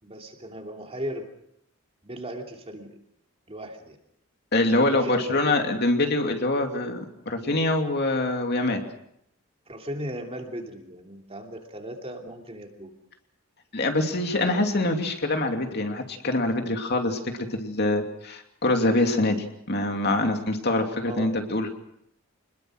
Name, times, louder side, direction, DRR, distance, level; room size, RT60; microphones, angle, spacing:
voice 1, 0.0-1.3 2.0-3.0 3.5-4.0 4.8-5.8 9.7-12.9 14.3-14.9 21.0-21.4, equal, 30° right, 3 dB, 2.9 m, -37 dB
voice 2, 4.5-8.8 13.7-19.4 19.7-21.7, left 2 dB, 50° left, 4 dB, 2.7 m, -24 dB
26.5 x 21.0 x 6.4 m, 0.74 s
head